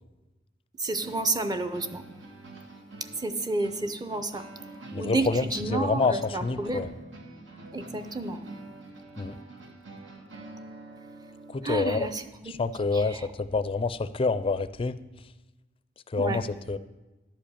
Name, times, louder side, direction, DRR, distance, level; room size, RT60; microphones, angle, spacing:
voice 1, 0.8-2.0 3.2-4.4 5.0-6.9 7.7-8.5 11.6-12.5 12.9-13.3 16.2-16.4, right 2 dB, 20° right, 9 dB, 0.6 m, -30 dB
sound 1, 0.9-11.7, right 2 dB, 85° right, 1.4 m, -46 dB
voice 2, 4.9-6.9 9.2-9.4 11.5-12.1 12.5-15.0 16.1-16.8, left 4 dB, 30° left, 14 dB, 0.4 m, -27 dB
11.0 x 5.1 x 8.5 m, 1.1 s
head